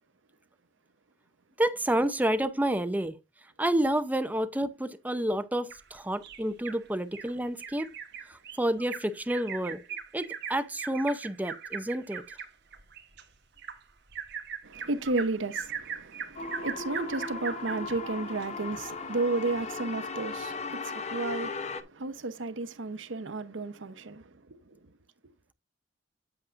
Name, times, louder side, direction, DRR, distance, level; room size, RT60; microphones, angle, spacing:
voice 1, 1.6-3.2 3.6-7.9 8.3-9.8 10.1-12.2, right 1 dB, 10° right, 0.6 m, -29 dB
Bird vocalization bird call bird song, 5.7-6.8 7.1-7.3 7.6-17.9 18.4-18.5 18.9-19.0, right 7 dB, 65° right, 1.4 m, -39 dB
voice 2, 14.6-24.8, right 3 dB, 80° right, 0.8 m, -33 dB
sound 1, 16.4-21.8, left 4 dB, 35° left, 0.8 m, -37 dB
8.2 x 8.2 x 2.5 m
head